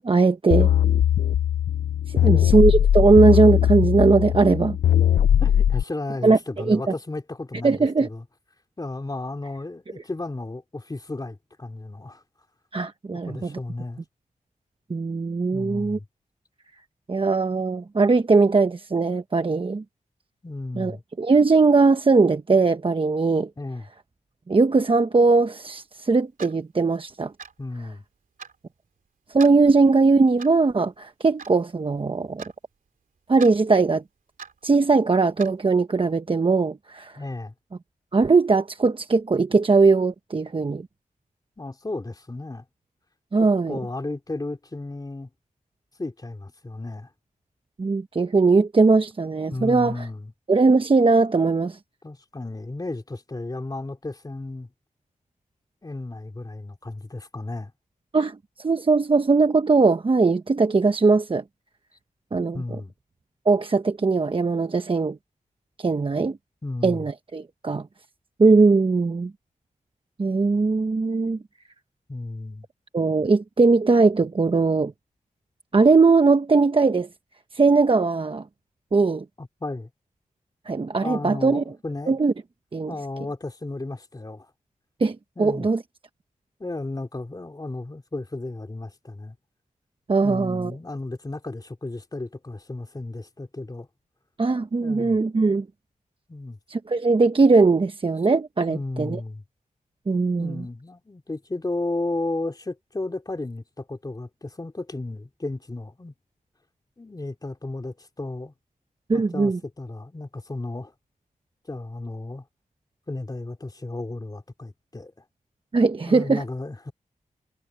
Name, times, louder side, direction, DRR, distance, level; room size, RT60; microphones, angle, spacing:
voice 1, 0.0-0.7 2.1-4.8 6.2-6.8 7.6-8.1 12.7-13.6 14.9-16.0 17.1-19.8 20.7-23.5 24.5-27.3 29.3-32.4 33.3-34.0 34.6-37.2 38.1-40.9 43.3-43.8 47.8-50.1 50.5-51.8 58.1-61.4 62.3-62.6 63.5-65.2 65.8-66.4 66.8-67.9 68.4-69.3 70.2-71.4 72.9-74.9 75.7-77.1 77.5-78.4 78.9-79.2 80.7-81.6 82.1-82.3 82.7-82.9 85.0-85.8 90.1-90.7 94.4-95.7 96.7-99.2 100.1-100.6 109.1-109.6 115.7-116.4, right 4 dB, 40° right, 1.0 m, -20 dB
sound 1, 0.5-5.8, left 10 dB, 85° left, 0.4 m, -20 dB
voice 2, 2.1-2.5 5.1-8.2 8.8-12.2 13.2-14.0 15.5-16.0 20.4-21.0 23.6-23.9 27.6-28.0 37.2-37.5 41.6-42.6 43.4-45.3 46.0-47.1 49.5-50.3 52.0-54.7 55.8-57.7 62.5-62.9 66.6-67.0 72.1-72.7 79.4-79.9 81.0-82.1 82.9-84.5 85.4-85.7 86.6-89.3 90.2-93.9 94.8-95.2 96.3-96.6 98.7-99.4 100.4-106.1 107.0-108.5 109.1-110.9 111.7-112.4 113.1-115.2 116.1-116.9, left 2 dB, 25° left, 3.1 m, -34 dB
Clock, 26.4-26.6 27.4-27.6 28.4-28.6 29.4-29.6 30.4-30.6 31.4-31.6 32.4-32.6 33.4-33.5 34.4-34.6 35.4-35.5, right 5 dB, 75° right, 3.1 m, -40 dB
cardioid pair, 70°, 14 cm